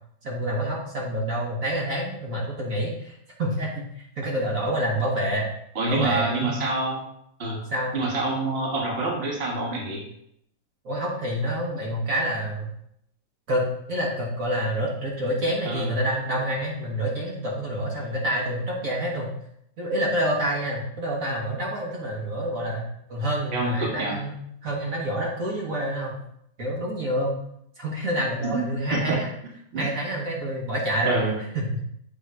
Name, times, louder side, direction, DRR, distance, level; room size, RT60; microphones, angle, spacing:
voice 1, 0.2-5.5 5.9-6.6 7.7-8.0 10.8-12.7 13.5-19.3 19.8-26.2 26.6-27.3 27.8-29.3 29.8-31.2 31.5-31.8, equal, 55° right, -3 dB, 1.6 m, -27 dB
voice 2, 5.7-7.0 7.4-7.6 7.9-10.0 15.6-15.9 18.0-18.1 23.5-24.2 28.4-29.2 29.7-29.9 31.0-31.4, right 2 dB, 40° right, -1 dB, 1.4 m, -27 dB
7.4 x 3.7 x 4.6 m, 0.74 s
omnidirectional pair, 1.8 m